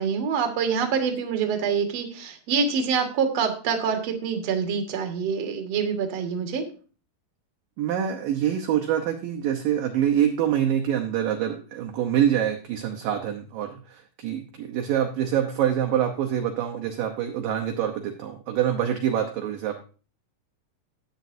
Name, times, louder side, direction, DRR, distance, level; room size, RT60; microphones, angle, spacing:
voice 1, 0.0-6.6, right 6 dB, 50° right, 4 dB, 2.3 m, -26 dB
voice 2, 7.8-19.8, right 10 dB, 70° right, 4 dB, 2.3 m, -25 dB
13.5 x 9.5 x 2.7 m, 0.37 s
omnidirectional pair, 4.9 m